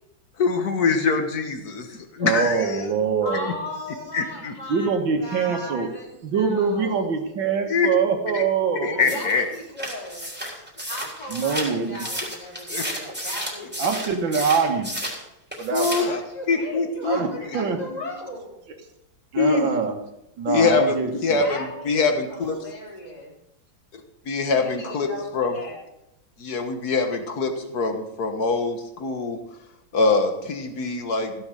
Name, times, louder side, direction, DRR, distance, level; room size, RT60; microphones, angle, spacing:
voice 1, 0.4-2.9 4.1-4.5 7.7-7.9 8.3-8.4 8.8-9.4 12.7-12.8 15.7-16.1 16.5-17.2 19.4-19.7 20.5-21.6 21.9-22.6 24.3-25.1 25.3-25.5 26.4-29.4 29.9-31.4, left 4 dB, 50° left, 6 dB, 1.9 m, -23 dB
voice 2, 2.2-3.5 4.7-5.9 6.2-9.1 11.3-12.0 13.8-15.1 15.6-15.9 17.0-17.3 17.5-17.8 19.3-19.9 20.4-21.4, right 5 dB, 70° right, 5 dB, 2.1 m, -24 dB
voice 3, 3.2-7.1 9.1-10.2 10.9-14.2 16.0-18.6 21.2-23.3 24.5-25.8, left 1 dB, 20° left, -4 dB, 3.6 m, -37 dB
sound 1, 9.0-15.2 15.5-16.2, equal, 5° right, 3.5 m, -32 dB
15.5 x 7.1 x 6.4 m, 0.87 s
omnidirectional pair, 2.2 m